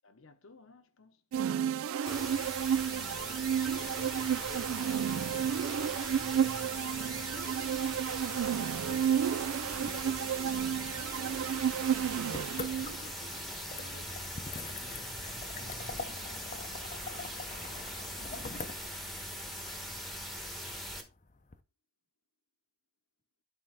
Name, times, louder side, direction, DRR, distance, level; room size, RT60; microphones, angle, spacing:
voice 1, 0.0-1.2 8.9-14.3, left 2 dB, 65° left, 0.9 m, -54 dB
sound 1, 1.3-13.1, right 9 dB, 70° right, 0.3 m, -32 dB
sound 2, 2.1-21.0, equal, ahead, 1.2 m, -41 dB
voice 2, 3.7-8.5 14.8-16.1, equal, 55° right, 1.7 m, -52 dB
sound 3, 9.7-21.6, left 4 dB, 35° left, 0.6 m, -46 dB
11.0 x 4.6 x 3.4 m
head